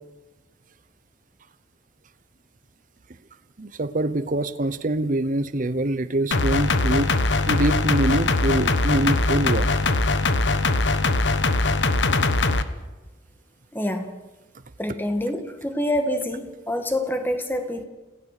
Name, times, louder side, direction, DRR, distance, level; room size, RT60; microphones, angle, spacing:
voice 1, 3.6-7.2 7.5-9.7, right 1 dB, 45° right, 13 dB, 0.9 m, -24 dB
sound 1, 6.3-12.6, left 2 dB, 75° left, 1.2 m, -21 dB
voice 2, 13.7-14.2 14.8-17.8, left 1 dB, 10° left, 7 dB, 1.8 m, -26 dB
27.5 x 17.0 x 6.7 m, 1.2 s
head